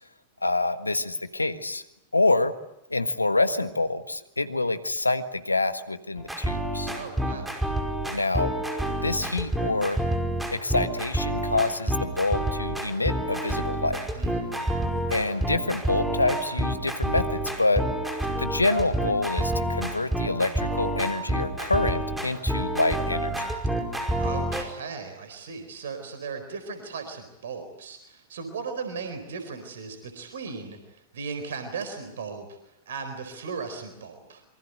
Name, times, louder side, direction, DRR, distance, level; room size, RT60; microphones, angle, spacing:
voice 1, 0.4-1.8 2.1-2.5 2.9-6.9 8.1-8.5 9.0-10.0 10.5-14.0 15.1-17.8 18.4-23.3, left 2 dB, 85° left, 10 dB, 1.6 m, -26 dB
sound 1, 6.2-24.6, right 1 dB, 5° right, 5.1 m, -28 dB
voice 2, 6.9-7.7 14.1-14.7 24.1-32.6 32.9-34.4, right 5 dB, 65° right, 8 dB, 4.4 m, -37 dB
26.5 x 24.5 x 8.0 m, 0.84 s
figure-of-eight pair, 95°, 0 cm